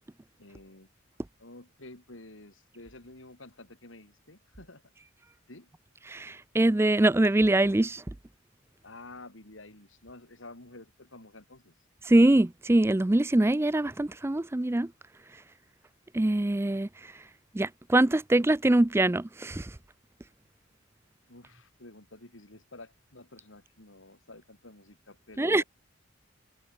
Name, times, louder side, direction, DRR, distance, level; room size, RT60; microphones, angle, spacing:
voice 1, 0.4-0.9 1.4-4.8 5.5-5.7 8.8-11.7 21.3-25.6, left 2 dB, 75° left, 4.0 m, -50 dB
voice 2, 6.1-8.0 12.0-14.9 16.1-17.1 17.5-19.7 25.4-25.6, right 1 dB, 10° right, 0.4 m, -23 dB
head